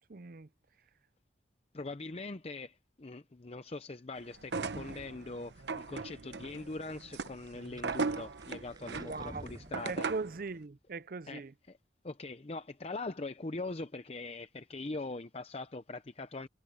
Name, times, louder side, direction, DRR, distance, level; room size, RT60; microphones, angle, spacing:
voice 1, 0.1-0.5 9.0-9.5 9.8-11.5, right 4 dB, 50° right, 0.6 m, -40 dB
voice 2, 1.7-10.1 11.3-11.8 12.0-16.5, left 3 dB, 35° left, 0.6 m, -42 dB
sound 1, 4.4-10.4, right 4 dB, 75° right, 0.9 m, -38 dB
sound 2, 7.5-10.3, right 1 dB, 25° right, 7.8 m, -51 dB
head